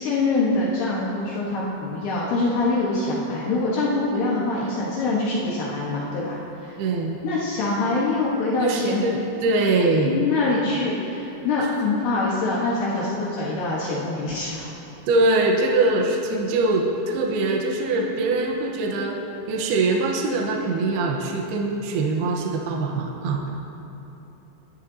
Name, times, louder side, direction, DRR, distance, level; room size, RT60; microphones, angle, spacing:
voice 1, 0.0-6.7 7.2-9.0 10.0-14.7, left 3 dB, 70° left, -6 dB, 3.1 m, -24 dB
voice 2, 6.8-7.2 8.6-10.2 15.1-19.2 19.5-23.5, right 2 dB, 75° right, -1 dB, 2.8 m, -23 dB
24.0 x 10.5 x 2.7 m, 3.0 s
omnidirectional pair, 5.0 m